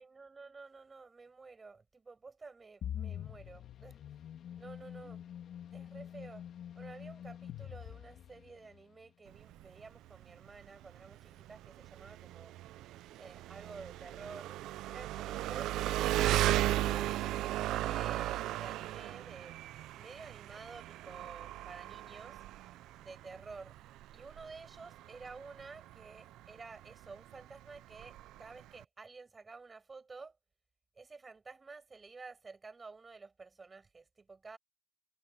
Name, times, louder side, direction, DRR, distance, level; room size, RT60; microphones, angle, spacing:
voice 1, 0.0-4.0 4.5-5.3 5.7-6.4 6.7-12.5 13.2-14.6 14.9-17.1 17.8-19.6 19.9-22.4 23.0-23.8 24.1-30.4 30.9-34.6, right 4 dB, 30° right, 7.9 m, -51 dB
sound 1, 2.8-8.8, left 10 dB, 70° left, 3.7 m, -45 dB
Engine, 9.3-28.8, right 15 dB, 90° right, 0.5 m, -36 dB
cardioid pair, 90°, 0 cm